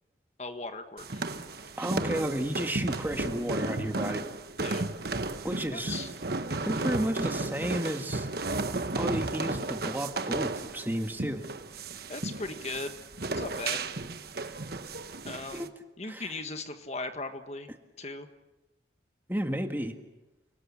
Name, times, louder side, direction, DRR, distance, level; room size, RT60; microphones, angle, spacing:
voice 1, 0.4-1.3 4.6-4.9 5.7-6.1 12.1-12.9 13.4-13.9 15.2-15.7 16.0-17.7 18.0-18.3, left 3 dB, 35° left, 7 dB, 1.5 m, -38 dB
sound 1, 1.0-15.7, right 2 dB, 55° right, 1.3 m, -34 dB
voice 2, 1.8-4.3 5.4-6.1 6.6-8.3 9.0-11.4 15.6-15.7 16.1-16.4 19.3-19.9, right 1 dB, 10° right, 5 dB, 1.8 m, -32 dB
29.5 x 19.5 x 8.7 m, 1.0 s
head